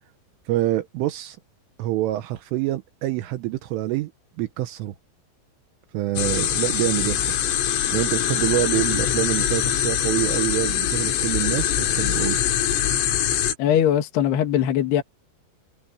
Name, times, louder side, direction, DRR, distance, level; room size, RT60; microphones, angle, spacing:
voice 1, 0.5-1.4 1.8-4.1 4.4-5.0 5.9-7.4 7.9-12.4, right 16 dB, 80° right, 3.6 m, -26 dB
sound 1, 6.2-13.5, left 10 dB, 80° left, 4.9 m, -23 dB
voice 2, 13.6-15.0, left 10 dB, 60° left, 3.9 m, -20 dB
omnidirectional pair, 5.8 m